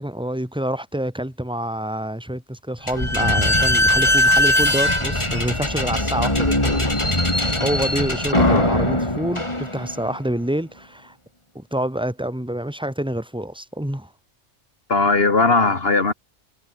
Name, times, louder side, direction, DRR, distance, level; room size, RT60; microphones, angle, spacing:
voice 1, 0.0-7.0 7.3-11.1 11.5-14.1, right 1 dB, 5° right, 2.6 m, -27 dB
Slam / Squeak, 2.9-10.1, left 1 dB, 25° left, 4.0 m, -20 dB
voice 2, 14.9-16.1, left 3 dB, 55° left, 2.3 m, -18 dB
omnidirectional pair, 1.2 m